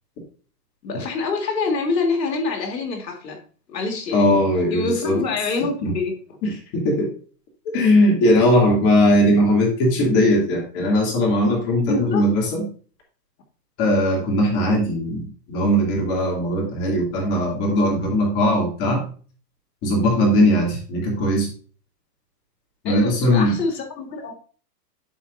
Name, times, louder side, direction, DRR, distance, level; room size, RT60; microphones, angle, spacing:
voice 1, 0.8-3.4 3.7-4.4 4.7-6.2 11.8-12.3 22.9-24.3, left 3 dB, 80° left, 2 dB, 2.0 m, -26 dB
voice 2, 4.1-5.2 5.8-5.9 6.4-7.1 7.7-12.6 13.8-19.0 19.8-21.5 22.8-23.6, left 1 dB, 30° left, -1 dB, 2.6 m, -19 dB
12.5 x 4.2 x 2.6 m, 0.40 s
hypercardioid pair, 150°, 49 cm